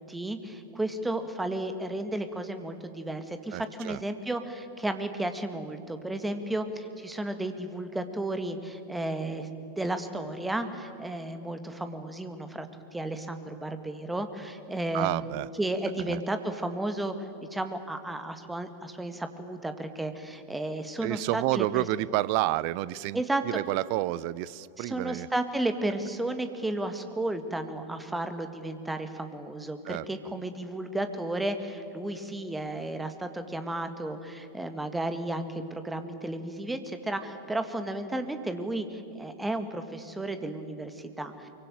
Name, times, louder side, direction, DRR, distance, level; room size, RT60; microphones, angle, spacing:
voice 1, 0.0-9.5 9.8-12.7 12.9-21.7 23.1-23.6 24.8-41.5, right 1 dB, 5° right, 8 dB, 2.0 m, -33 dB
voice 2, 3.5-4.0 14.9-15.5 16.1-16.2 21.0-25.3 29.8-30.0, right 17 dB, 45° right, 20 dB, 0.6 m, -29 dB
24.5 x 23.5 x 9.2 m, 2.7 s
figure-of-eight pair, 90°, 0 cm